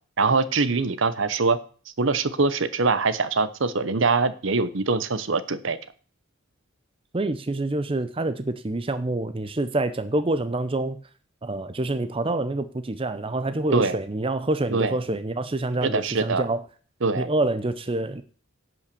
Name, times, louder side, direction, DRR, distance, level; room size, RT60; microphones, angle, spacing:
voice 1, 0.2-1.6 2.0-5.8 13.7-14.0 14.7-15.0 15.8-16.5 17.0-17.3, right 4 dB, 60° right, 14 dB, 0.8 m, -23 dB
voice 2, 7.1-11.0 11.4-16.6 17.2-18.2, right 2 dB, 25° right, 11 dB, 0.6 m, -27 dB
11.0 x 5.6 x 6.9 m, 0.42 s
head